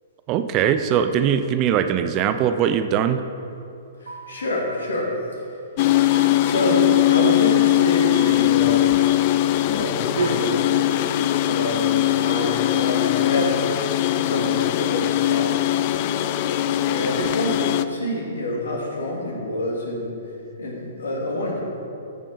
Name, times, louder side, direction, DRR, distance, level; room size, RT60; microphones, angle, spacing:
voice 1, 0.3-3.2, right 9 dB, 30° right, 9 dB, 0.5 m, -21 dB
voice 2, 4.0-5.4 6.4-8.9 9.6-10.6 11.4-15.7 16.9-20.2 20.6-21.6, left 1 dB, 70° left, -2 dB, 2.4 m, -27 dB
sound 1, 4.1-4.5 6.1-6.6 8.2-8.6 10.2-10.7 12.2-12.7, right 4 dB, 70° right, 1.4 m, -40 dB
sound 2, 5.8-17.9, left 14 dB, 40° left, 0.4 m, -20 dB
14.0 x 5.3 x 5.1 m, 2.6 s
figure-of-eight pair, 115°, 0 cm